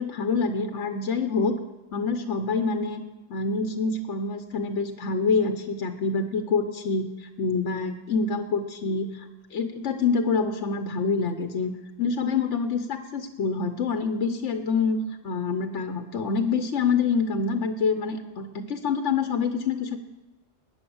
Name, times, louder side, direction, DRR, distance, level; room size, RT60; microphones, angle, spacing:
voice 1, 0.0-1.6 1.9-3.0 3.3-11.7 12.0-15.0 15.2-20.0, left 4 dB, 80° left, 8 dB, 1.2 m, -26 dB
20.0 x 9.3 x 7.1 m, 1.1 s
omnidirectional pair, 1.2 m